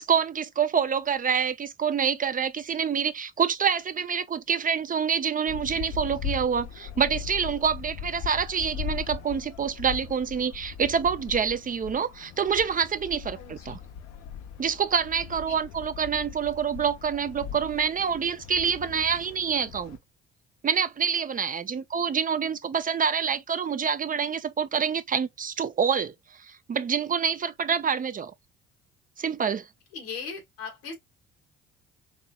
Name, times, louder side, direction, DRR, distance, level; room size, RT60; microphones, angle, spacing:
voice 1, 0.0-13.8 14.6-20.0 20.6-28.3 29.2-29.7, right 7 dB, 30° right, 0.5 m, -27 dB
sound 1, 5.5-20.0, left 8 dB, 60° left, 0.7 m, -39 dB
voice 2, 13.3-13.8 15.5-15.6 21.7-21.8 29.9-30.9, left 5 dB, 85° left, 1.8 m, -39 dB
4.2 x 2.9 x 2.3 m
hypercardioid pair, 55°, 30 cm